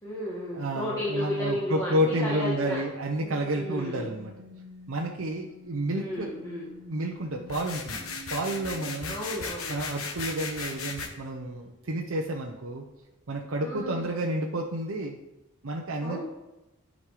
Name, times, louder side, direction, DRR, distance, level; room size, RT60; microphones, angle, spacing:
voice 1, 0.0-2.8 3.5-4.1 5.9-6.7 9.1-9.7 13.6-14.2 16.0-16.2, left 1 dB, 15° left, -7 dB, 1.8 m, -33 dB
voice 2, 0.5-4.3 4.9-6.3 6.9-9.2 9.7-12.9 13.3-15.2 15.6-16.2, right 1 dB, 70° right, 1 dB, 0.7 m, -30 dB
sound 1, 3.0-13.2 13.8-14.1, left 2 dB, 20° right, 2.5 m, -50 dB
sound 2, 7.5-11.1, left 5 dB, 85° left, 1.2 m, -36 dB
10.5 x 5.3 x 4.9 m, 0.98 s
head